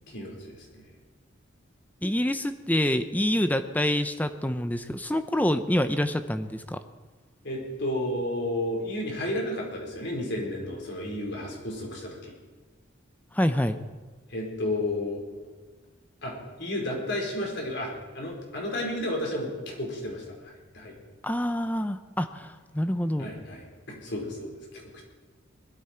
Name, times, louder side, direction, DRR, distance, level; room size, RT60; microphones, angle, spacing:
voice 1, 0.1-0.9 7.4-12.3 14.3-15.2 16.2-20.9 23.2-25.0, left 1 dB, 60° left, -1 dB, 4.4 m, -32 dB
voice 2, 2.0-6.8 13.3-13.8 21.2-23.3, left 1 dB, 10° left, 10 dB, 0.6 m, -26 dB
20.0 x 13.5 x 4.5 m, 1.3 s
head